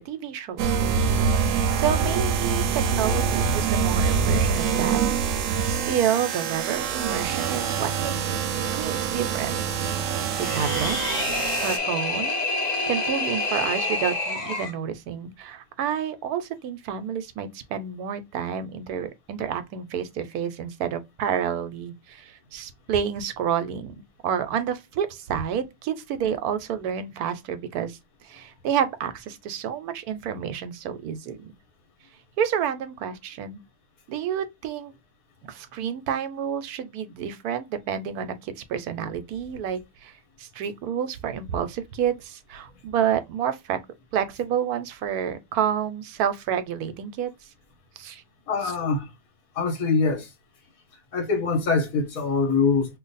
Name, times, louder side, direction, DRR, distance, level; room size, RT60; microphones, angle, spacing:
voice 1, 0.0-5.0 5.3-8.4 8.7-9.6 10.1-11.0 11.6-12.4 12.9-23.9 24.2-31.5 32.4-33.6 34.1-34.9 35.4-43.8 44.1-47.5 48.0-48.2 48.6-48.7, right 8 dB, 90° right, 1.1 m, -29 dB
sound 1, 0.6-11.8, right 6 dB, 70° right, 0.9 m, -25 dB
sound 2, 10.3-14.8, left 3 dB, 35° left, 0.9 m, -27 dB
voice 2, 48.5-49.1 49.5-50.3 51.1-53.0, left 4 dB, 70° left, 1.4 m, -24 dB
3.1 x 2.1 x 3.9 m
omnidirectional pair, 1.6 m